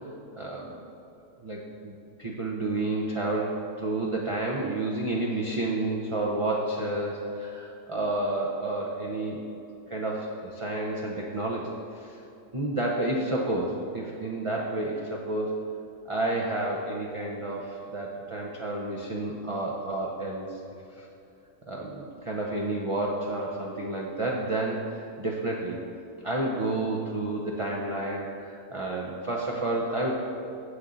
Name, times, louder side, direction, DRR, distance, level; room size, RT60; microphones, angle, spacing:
voice 1, 0.4-0.8 1.4-9.4 9.9-12.2 12.5-15.6 16.1-20.6 21.0-21.1 21.7-25.8 26.2-30.1, right 2 dB, 30° right, -3 dB, 0.6 m, -30 dB
9.7 x 7.5 x 3.9 m, 2.8 s
omnidirectional pair, 1.6 m